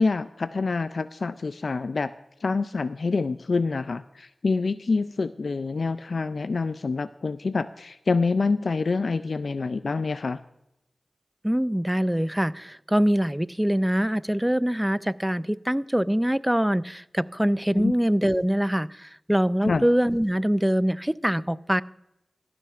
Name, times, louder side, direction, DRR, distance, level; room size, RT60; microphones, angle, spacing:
voice 1, 0.0-2.1 2.4-10.4 17.8-17.9 19.6-19.8, left 4 dB, 75° left, 13 dB, 0.3 m, -26 dB
voice 2, 11.4-21.8, equal, 10° right, 17 dB, 0.4 m, -24 dB
14.5 x 12.0 x 2.5 m, 0.86 s
cardioid pair, 40°, 0 cm